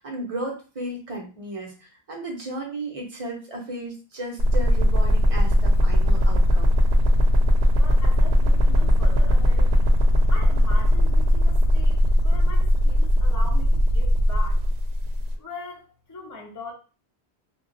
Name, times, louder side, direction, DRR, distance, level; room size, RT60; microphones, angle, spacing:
voice 1, 0.0-6.8, right 1 dB, 35° right, 0 dB, 0.9 m, -34 dB
sound 1, 4.4-15.3, equal, 85° right, 0.8 m, -19 dB
voice 2, 7.8-9.7 10.3-14.6 15.4-16.7, left 2 dB, 25° left, -2 dB, 0.5 m, -40 dB
2.4 x 2.2 x 3.8 m, 0.35 s
omnidirectional pair, 1.0 m